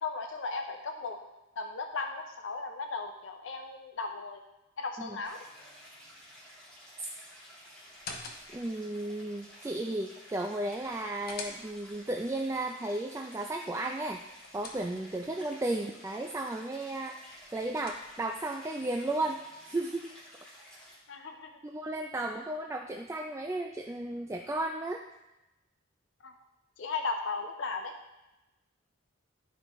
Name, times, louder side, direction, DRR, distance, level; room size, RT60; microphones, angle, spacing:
voice 1, 0.0-1.2 1.6-4.4 4.8-5.4 21.1-21.5 26.2-26.3 26.8-28.0, left 4 dB, 75° left, 5 dB, 0.6 m, -36 dB
Stream, 5.2-21.0, equal, 5° left, 2.6 m, -53 dB
sound 1, 7.9-8.8 10.8-12.0 14.0-15.3 17.3-18.4, left 3 dB, 50° left, 0.9 m, -47 dB
voice 2, 8.5-14.2 14.5-17.2 17.5-20.1 21.6-25.0, right 2 dB, 15° right, 3 dB, 0.3 m, -34 dB
11.5 x 5.0 x 3.0 m, 0.97 s
head